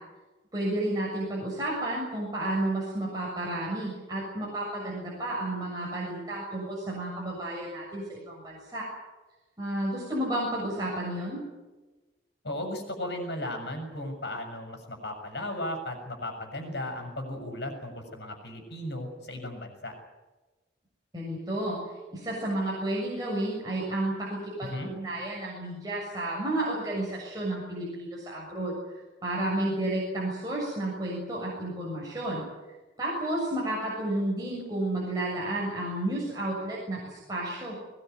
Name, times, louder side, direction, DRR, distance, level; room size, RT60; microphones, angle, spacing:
voice 1, 0.5-8.9 9.6-11.4 21.1-21.8 22.1-28.7 29.2-32.4 33.0-37.8, right 1 dB, 20° right, -4 dB, 7.1 m, -31 dB
voice 2, 12.4-19.9 24.6-24.9, left 1 dB, 70° left, 4 dB, 6.8 m, -36 dB
21.5 x 20.5 x 9.5 m, 1.2 s
head